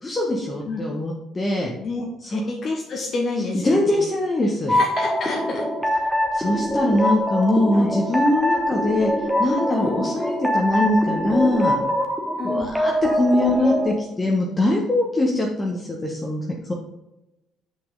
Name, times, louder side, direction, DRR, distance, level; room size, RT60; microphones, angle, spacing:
voice 1, 0.0-1.7 2.2-2.4 3.6-4.8 6.3-11.8 12.4-16.4 16.7-16.8, left 1 dB, 25° left, -1 dB, 1.3 m, -22 dB
voice 2, 1.8-4.0 4.7-5.7 7.7-7.9 9.8-10.1 12.4-12.7 13.5-13.7 14.2-14.4 15.3-15.5, left 3 dB, 45° left, 0 dB, 1.2 m, -29 dB
sound 1, 4.7-13.9, equal, 5° right, 1.4 m, -23 dB
7.8 x 5.8 x 3.9 m, 0.94 s
figure-of-eight pair, 50°, 0 cm